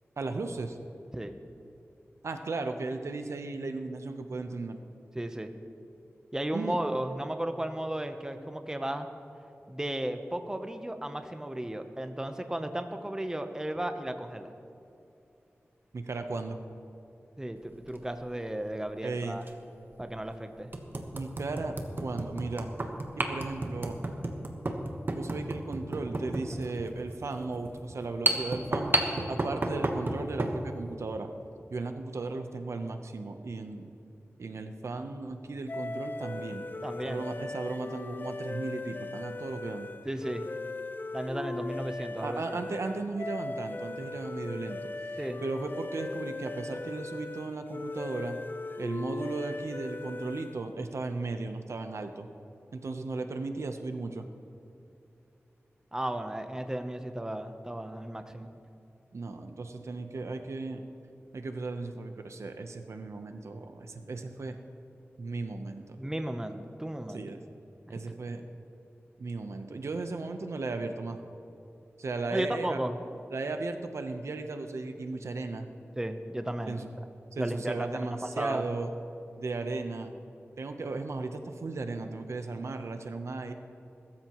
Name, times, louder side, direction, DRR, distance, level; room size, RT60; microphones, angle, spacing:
voice 1, 0.2-0.8 2.2-4.8 6.5-6.8 15.9-16.6 19.0-19.4 21.1-22.7 23.2-24.0 25.1-28.9 29.3-31.3 31.7-33.9 34.4-36.7 37.0-39.9 42.2-48.4 48.8-52.3 52.7-54.3 59.1-60.8 61.3-64.6 65.2-66.0 67.1-67.4 67.9-68.4 69.2-71.2 72.0-72.8 73.3-75.7 76.7-76.9 77.3-78.9 79.4-80.1 80.6-83.5, right 3 dB, 80° right, 6 dB, 0.9 m, -36 dB
voice 2, 5.1-5.5 6.3-9.1 9.7-14.5 17.4-19.4 20.0-20.7 36.8-37.3 40.0-40.5 41.1-42.6 45.2-45.4 55.9-58.5 66.0-67.3 67.9-68.0 72.3-73.0 76.0-76.9 77.4-78.1 78.4-78.6, right 1 dB, 15° right, 7 dB, 0.8 m, -34 dB
sound 1, 17.7-18.0 19.4-19.5 20.1-20.2 20.7-30.6, right 2 dB, 45° right, 1.3 m, -32 dB
sound 2, 35.7-50.7, left 3 dB, 45° left, 0.5 m, -39 dB
21.0 x 13.0 x 3.1 m, 2.7 s
wide cardioid pair, 85°, 5 cm